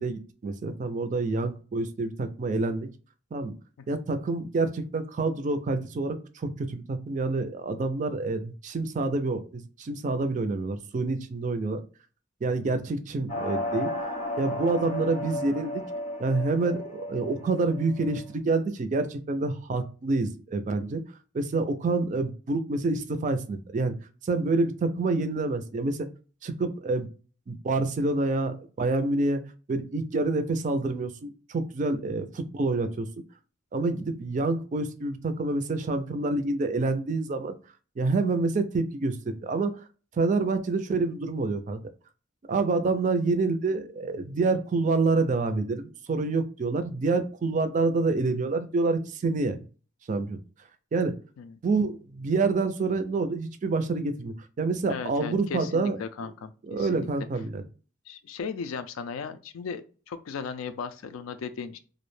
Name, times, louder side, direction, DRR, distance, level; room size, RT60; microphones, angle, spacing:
voice 1, 0.0-2.9 3.3-3.5 3.9-11.8 12.4-13.9 14.4-15.8 16.2-21.0 21.3-23.9 24.2-26.0 26.4-27.1 27.5-29.4 29.7-33.1 33.7-37.6 38.0-39.7 40.2-41.8 42.5-49.6 50.1-50.4 50.9-51.1 51.6-56.0 56.7-57.6, right 3 dB, 40° right, 0.3 m, -27 dB
sound 1, 13.3-18.3, left 1 dB, 30° left, 0.6 m, -34 dB
voice 2, 54.9-57.1 58.1-61.8, left 5 dB, 85° left, 0.4 m, -36 dB
2.4 x 2.1 x 3.1 m
head